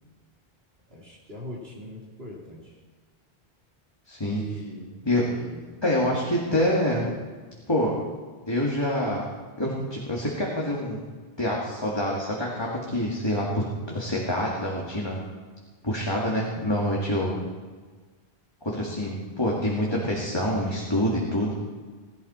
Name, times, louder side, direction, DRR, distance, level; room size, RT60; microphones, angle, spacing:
voice 1, 0.9-2.7 4.3-4.9 5.2-5.7 16.3-16.6, equal, 75° right, -3 dB, 3.4 m, -41 dB
voice 2, 4.1-4.4 5.0-5.2 5.8-7.1 7.7-7.9 8.5-9.2 9.6-11.0 11.4-15.2 15.8-17.4 18.6-21.5, left 1 dB, 25° left, -4 dB, 2.1 m, -26 dB
16.5 x 16.5 x 4.3 m, 1.4 s
omnidirectional pair, 1.0 m